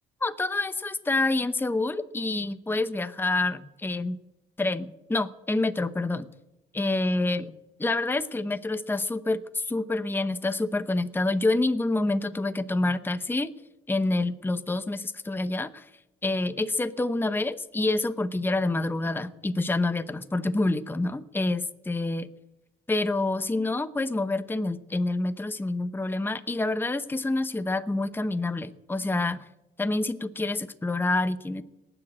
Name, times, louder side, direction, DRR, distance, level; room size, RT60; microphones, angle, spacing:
voice 1, 0.2-4.2 4.6-6.3 6.7-7.5 7.8-13.5 13.9-15.9 16.2-22.3 22.9-29.4 29.8-31.6, left 2 dB, 10° left, 11 dB, 0.8 m, -27 dB
18.5 x 10.0 x 7.7 m, 0.95 s
cardioid pair, 90°, 20 cm